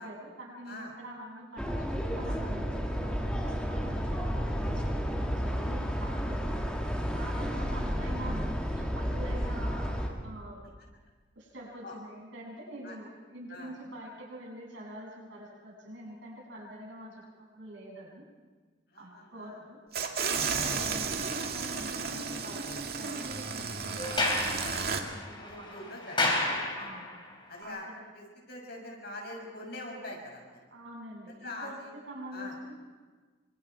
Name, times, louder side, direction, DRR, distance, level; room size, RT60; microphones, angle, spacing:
voice 1, 0.0-6.7 7.1-10.6 11.3-18.2 18.9-19.8 20.2-26.0 26.7-27.1 27.6-28.1 30.7-31.8 32.1-32.7, right 1 dB, 75° right, -2 dB, 7.9 m, -45 dB
sound 1, 1.6-10.1, equal, 5° left, 2.6 m, -32 dB
voice 2, 18.9-19.6 20.0-20.2 25.5-26.3 26.8-26.9 27.5-27.9 28.1-30.6 31.3-31.9 32.3-32.5, left 2 dB, 55° left, 0 dB, 6.5 m, -43 dB
sound 2, 19.9-25.0, right 5 dB, 50° right, 2.2 m, -33 dB
Sliding door, 24.0-27.2, left 2 dB, 25° left, 3.9 m, -31 dB
29.0 x 25.0 x 4.7 m, 1.4 s
head